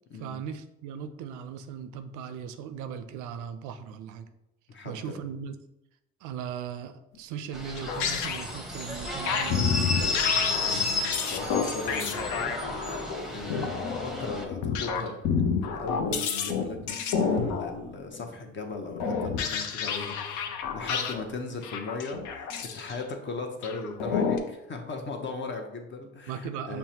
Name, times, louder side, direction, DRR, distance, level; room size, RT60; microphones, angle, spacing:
voice 1, 0.2-4.3 4.8-5.6 6.2-9.9 26.3-26.8, right 7 dB, 70° right, 9 dB, 0.5 m, -38 dB
voice 2, 4.7-5.2 10.4-12.8 13.3-15.2 15.5-26.8, left 3 dB, 35° left, 4 dB, 0.8 m, -38 dB
sound 1, 7.5-14.4, left 3 dB, ahead, 0.8 m, -32 dB
sound 2, 7.8-8.6 9.3-18.3 18.9-21.2 21.5-23.0 23.6-24.4, left 6 dB, 70° left, 0.6 m, -30 dB
5.7 x 2.2 x 2.8 m, 0.86 s
hypercardioid pair, 70°, 32 cm